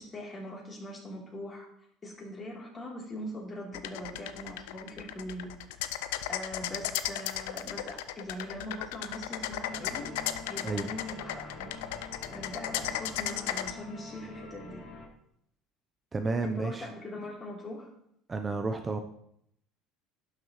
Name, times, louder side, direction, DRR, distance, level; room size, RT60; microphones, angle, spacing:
voice 1, 0.0-1.7 2.0-5.5 6.3-10.1 10.5-11.9 12.3-14.8 16.4-17.9, left 1 dB, 25° left, -3 dB, 3.3 m, -41 dB
sound 1, 3.7-13.7, left 12 dB, 85° left, 0.5 m, -35 dB
sound 2, 9.7-15.1, left 3 dB, 50° left, 3.6 m, -46 dB
voice 2, 16.1-16.9 18.3-19.0, right 3 dB, 25° right, 6 dB, 0.7 m, -31 dB
11.5 x 6.1 x 3.1 m, 0.73 s
supercardioid pair, 90°, 0 cm